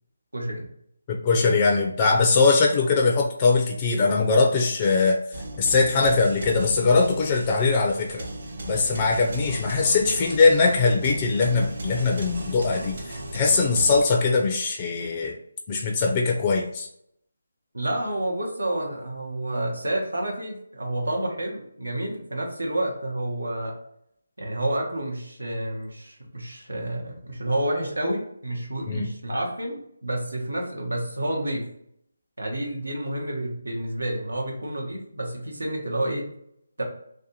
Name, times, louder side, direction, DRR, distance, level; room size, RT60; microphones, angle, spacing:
voice 1, 0.3-0.7 17.7-23.7 24.4-31.6 32.4-36.2 36.8-36.9, right 1 dB, 85° right, 0 dB, 0.9 m, -29 dB
voice 2, 1.1-5.2 5.6-8.2 8.7-15.3 15.7-16.9 28.9-29.1, left 4 dB, 25° left, 0 dB, 0.4 m, -21 dB
sound 1, 5.3-14.0, right 1 dB, 50° right, 0.6 m, -36 dB
2.6 x 2.2 x 2.8 m, 0.73 s
figure-of-eight pair, 160°, 0 cm